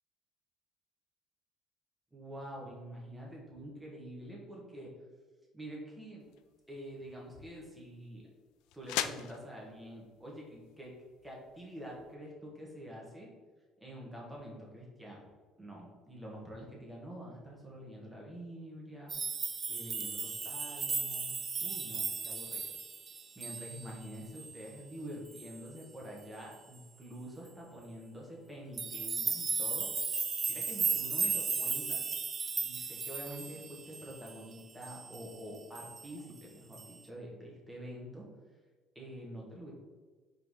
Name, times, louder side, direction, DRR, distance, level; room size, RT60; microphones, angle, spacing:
voice 1, 2.1-4.9 5.5-6.3 6.7-8.2 8.7-11.0 11.2-13.3 13.8-15.3 15.6-19.2 19.7-22.7 23.4-29.9 30.5-32.0 32.6-38.3 39.0-39.7, equal, 5° right, -3 dB, 1.7 m, -47 dB
sound 1, 6.2-12.1, left 11 dB, 85° left, 0.4 m, -43 dB
sound 2, 19.1-24.1 24.4-24.7 25.3-25.6 28.8-34.4 34.8-35.3 35.8-36.1 36.7-36.9, right 5 dB, 30° right, 0.6 m, -36 dB
4.9 x 3.9 x 4.8 m, 1.4 s
cardioid pair, 130°, 0 cm